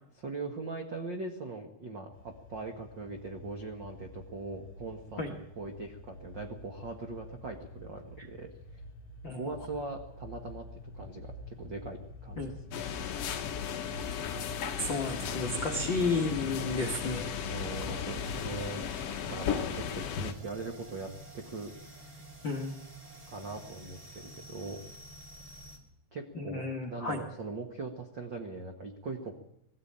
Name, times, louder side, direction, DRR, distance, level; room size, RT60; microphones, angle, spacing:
voice 1, 0.2-8.8 9.3-10.6 10.9-12.5 15.6-15.8 17.5-18.9 19.3-22.1 23.3-24.8 26.1-29.4, right 3 dB, 80° right, 4 dB, 1.0 m, -41 dB
sound 1, 2.1-18.6, left 1 dB, 45° left, 3.5 m, -47 dB
sound 2, 12.7-20.3, left 8 dB, 80° left, 1.4 m, -36 dB
voice 2, 14.8-17.3 17.9-18.0 22.4-22.7 26.3-27.2, left 3 dB, 60° left, 5 dB, 1.2 m, -32 dB
sound 3, 18.1-25.8, right 1 dB, 25° right, 2.6 m, -49 dB
21.0 x 15.0 x 8.8 m, 0.77 s
omnidirectional pair, 4.8 m